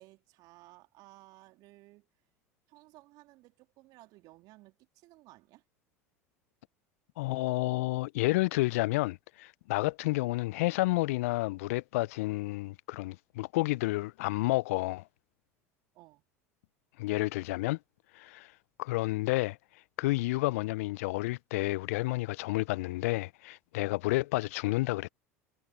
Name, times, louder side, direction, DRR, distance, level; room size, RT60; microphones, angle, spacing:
voice 1, 0.0-2.1 2.7-5.6 15.9-16.2, right 20 dB, 55° right, 3.2 m, -57 dB
voice 2, 7.2-15.0 17.0-17.8 18.1-18.5 18.8-19.6 20.0-25.1, left 20 dB, 65° left, 0.4 m, -30 dB
figure-of-eight pair, 75°, 8 cm